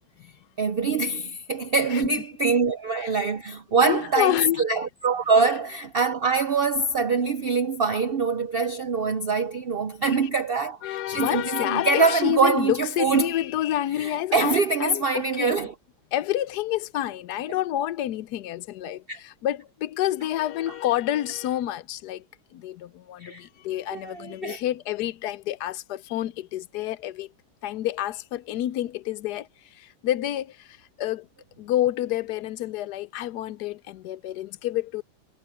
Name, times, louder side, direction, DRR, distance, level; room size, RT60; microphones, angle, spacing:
voice 1, 0.6-13.3 14.0-15.7 19.1-19.2 20.7-20.8 23.2-23.5 23.9-24.6, right 4 dB, 65° right, 0.5 m, -24 dB
voice 2, 3.8-4.7 10.2-10.3 10.8-15.6 16.1-22.2 22.5-27.3 27.6-31.3 31.6-35.0, left 13 dB, 75° left, 1.2 m, -28 dB
omnidirectional pair, 1.8 m